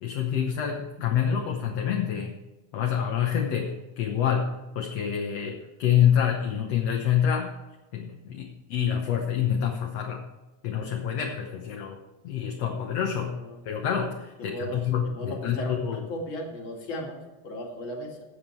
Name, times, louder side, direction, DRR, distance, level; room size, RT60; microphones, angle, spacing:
voice 1, 0.0-2.3 2.7-7.5 7.9-10.3 10.6-12.0 12.2-13.4 13.7-16.0, left 8 dB, 65° left, 2 dB, 1.9 m, -27 dB
voice 2, 13.1-13.6 14.4-18.2, equal, 45° left, 1 dB, 2.6 m, -36 dB
15.5 x 7.3 x 4.4 m, 1.1 s
omnidirectional pair, 3.5 m